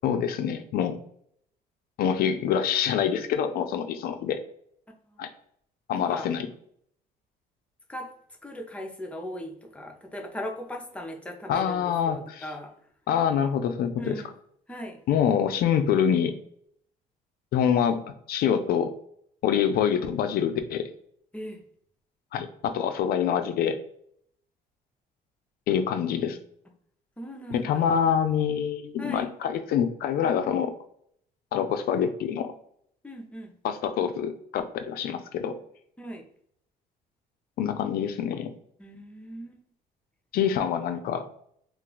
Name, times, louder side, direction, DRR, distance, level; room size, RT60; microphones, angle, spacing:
voice 1, 0.0-1.0 2.0-4.4 5.2-5.3 5.9-6.5 11.5-12.4 13.1-14.1 15.1-16.3 17.5-18.0 18.3-18.9 19.4-20.9 22.3-23.8 25.7-26.4 27.5-30.7 31.5-32.5 33.6-35.5 37.6-38.5 40.3-41.3, left 8 dB, 65° left, 8 dB, 0.4 m, -25 dB
voice 2, 5.9-6.3 7.9-8.1 8.4-12.7 14.0-14.3 14.7-15.0 21.3-21.6 27.2-28.0 29.0-29.3 33.0-33.5 36.0-36.3 38.8-39.6, equal, 5° left, 1 dB, 0.6 m, -38 dB
2.4 x 2.3 x 3.8 m, 0.66 s
cardioid pair, 110°, 17 cm